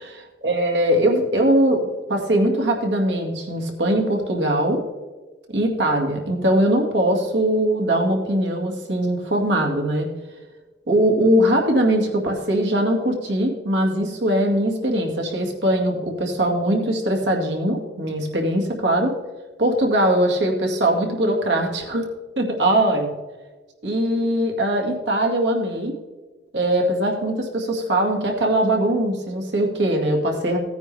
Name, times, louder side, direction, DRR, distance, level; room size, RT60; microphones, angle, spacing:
voice 1, 0.4-1.8 2.1-4.8 5.5-10.1 10.9-19.2 19.6-22.1 22.4-23.1 23.8-25.9 26.5-30.6, right 1 dB, 85° right, 1 dB, 2.1 m, -21 dB
16.5 x 9.4 x 3.4 m, 1.3 s
head